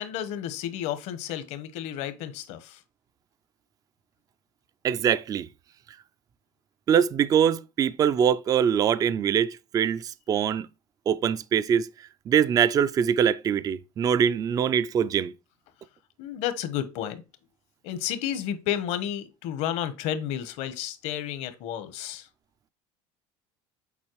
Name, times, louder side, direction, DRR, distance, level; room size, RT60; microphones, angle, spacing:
voice 1, 0.0-2.8 16.2-17.2 17.8-22.3, left 10 dB, 70° left, 1.0 m, -31 dB
voice 2, 4.8-5.5 6.9-10.7 11.1-11.9 12.3-15.3, right 8 dB, 30° right, 0.3 m, -23 dB
7.2 x 4.3 x 3.0 m
cardioid pair, 120°, 12 cm